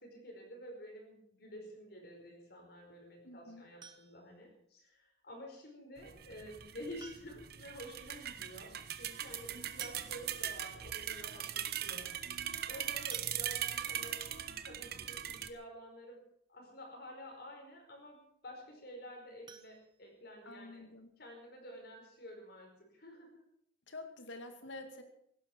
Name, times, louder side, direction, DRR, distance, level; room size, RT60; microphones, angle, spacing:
voice 1, 0.0-12.1 12.7-14.3 14.6-20.9 21.2-23.4, equal, 55° left, 1 dB, 4.9 m, -50 dB
voice 2, 3.2-3.6 20.4-21.1 23.9-25.0, left 2 dB, 80° left, 6 dB, 2.3 m, -48 dB
sound 1, 3.8-4.4 5.9-6.0 7.0-7.6 7.9-8.0 8.3-8.4 9.4-9.5 9.8-10.5 11.1-11.2 11.5-11.7 13.1-13.9 19.4-20.6 21.0-21.1 21.5-21.6 22.0-22.1, right 6 dB, 25° right, 1.0 m, -56 dB
sound 2, 6.0-15.5, right 10 dB, 55° right, 1.0 m, -40 dB
17.0 x 12.0 x 6.1 m, 0.70 s
head